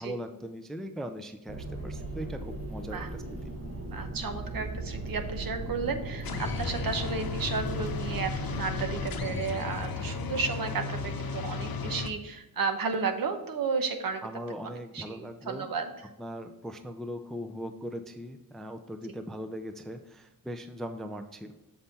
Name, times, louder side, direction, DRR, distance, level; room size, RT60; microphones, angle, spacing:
voice 1, 0.0-3.2 14.2-15.7 16.2-21.5, equal, ahead, 7 dB, 0.3 m, -39 dB
sound 1, 1.5-9.2, right 2 dB, 40° right, 1.1 m, -38 dB
voice 2, 3.9-14.2 14.6-15.9, right 5 dB, 65° right, 7 dB, 0.9 m, -33 dB
sound 2, 6.2-12.1, left 4 dB, 70° left, 0.8 m, -34 dB
7.0 x 5.5 x 4.1 m, 0.92 s
wide cardioid pair, 180°, 37 cm